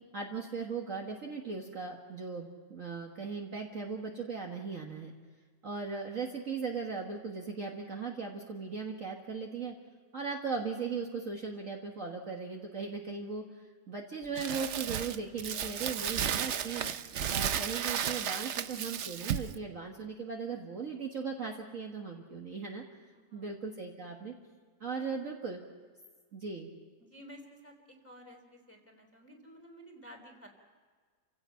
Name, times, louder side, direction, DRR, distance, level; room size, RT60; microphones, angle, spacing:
voice 1, 0.1-5.1 5.6-9.8 10.1-16.9 17.3-23.0 23.3-24.3 24.8-25.6 26.3-26.7, right 5 dB, 45° right, 0 dB, 1.8 m, -38 dB
Crumpling crinkling, 14.4-19.6, right 9 dB, 65° right, 0.7 m, -34 dB
voice 2, 23.1-23.5 24.9-25.3 27.0-30.5, equal, 5° left, 1 dB, 3.3 m, -53 dB
29.0 x 16.5 x 5.7 m, 1.5 s
omnidirectional pair, 2.0 m